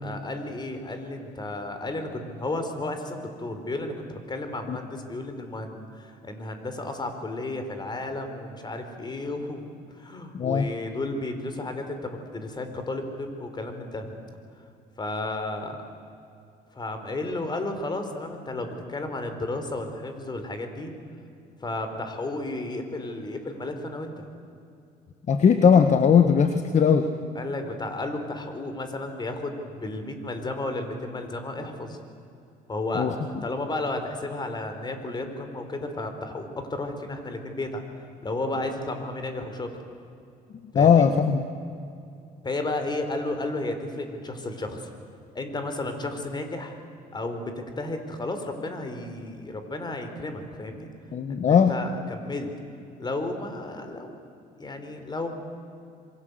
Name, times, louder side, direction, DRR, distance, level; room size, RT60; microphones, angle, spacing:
voice 1, 0.0-14.1 15.0-15.7 16.7-20.9 21.6-24.3 27.3-32.0 32.7-37.8 38.2-39.7 40.7-41.1 42.4-44.8 45.3-46.8 47.1-50.9 51.3-52.5 53.0-54.2 54.6-55.3, left 2 dB, 25° left, 7 dB, 4.2 m, -33 dB
voice 2, 10.3-10.7 25.3-27.1 32.9-33.1 40.7-41.4 51.1-51.7, left 7 dB, 45° left, 8 dB, 1.5 m, -19 dB
27.0 x 23.5 x 8.2 m, 2.6 s
cardioid pair, 110°, 17 cm